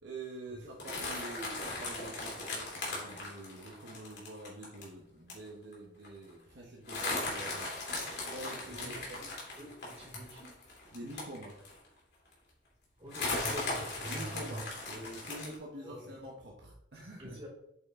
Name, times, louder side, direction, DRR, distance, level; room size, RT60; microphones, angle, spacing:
voice 1, 0.0-7.9 8.2-9.2 10.9-11.6 14.1-17.4, right 1 dB, 65° right, -1 dB, 1.0 m, -46 dB
sound 1, 0.8-4.8 5.3-5.5 5.7-5.8 6.0-6.3 6.9-11.9 12.3-12.4 13.1-15.5, left 2 dB, 60° left, 2.6 m, -38 dB
voice 2, 8.8-10.7 13.0-14.7 15.8-16.1 17.0-17.5, right 1 dB, 30° right, -7 dB, 3.0 m, -46 dB
8.3 x 4.8 x 3.6 m, 0.78 s
head